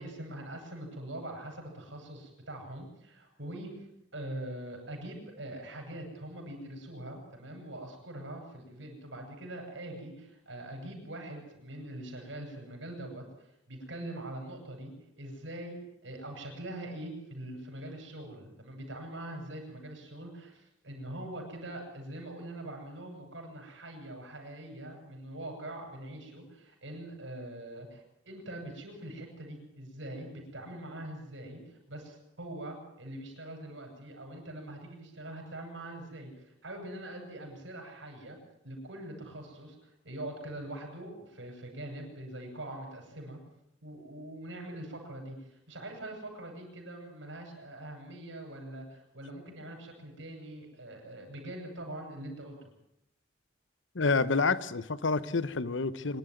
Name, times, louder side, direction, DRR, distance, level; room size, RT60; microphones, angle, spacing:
voice 1, 0.0-3.7 4.1-14.9 15.2-38.4 38.6-43.4 43.8-52.7, right 1 dB, 80° right, 2 dB, 7.0 m, -43 dB
voice 2, 53.9-56.2, left 4 dB, 75° left, 16 dB, 0.9 m, -28 dB
25.0 x 11.5 x 9.3 m, 0.82 s
head